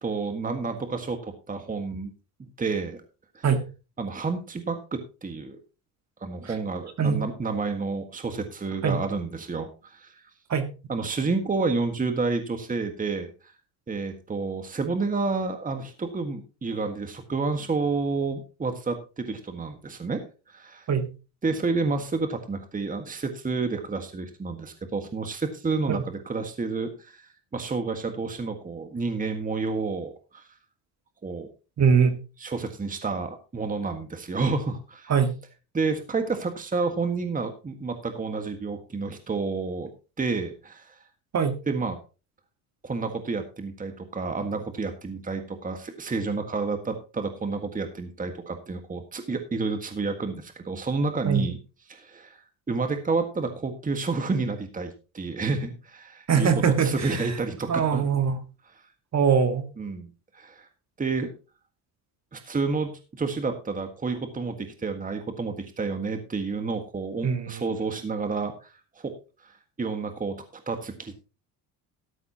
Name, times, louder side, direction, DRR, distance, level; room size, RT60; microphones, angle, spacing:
voice 1, 0.0-2.1 2.6-3.0 3.3-3.4 4.0-5.6 6.2-10.1 10.9-13.5 13.9-20.9 21.4-30.4 31.2-31.5 32.4-35.1 35.7-39.9 40.2-41.0 41.7-42.0 42.8-51.6 51.9-52.4 52.7-58.0 59.8-60.1 60.3-60.7 61.0-61.3 62.3-69.1 69.4-71.1, right 4 dB, 20° right, 6 dB, 1.7 m, -30 dB
voice 2, 31.8-32.2 35.1-35.4 41.3-41.6 51.3-51.5 56.3-57.3 57.7-58.4 59.1-59.6 67.2-67.7, right 6 dB, 40° right, 7 dB, 1.9 m, -22 dB
13.0 x 11.0 x 2.9 m, 0.32 s
supercardioid pair, 95°, 41 cm